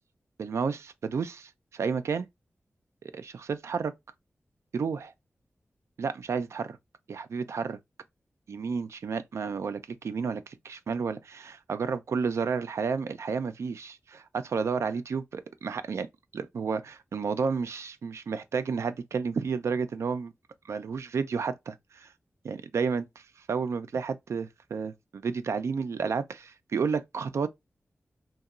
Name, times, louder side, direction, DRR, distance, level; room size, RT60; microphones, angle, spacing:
voice 1, 0.4-2.3 3.0-3.9 4.7-5.1 6.0-6.8 7.1-7.8 8.5-16.1 16.3-20.3 20.7-22.1 22.4-23.1 23.5-27.5, right 5 dB, 80° right, 0.3 m, -31 dB
2.8 x 2.2 x 2.3 m
wide cardioid pair, 100°, 5 cm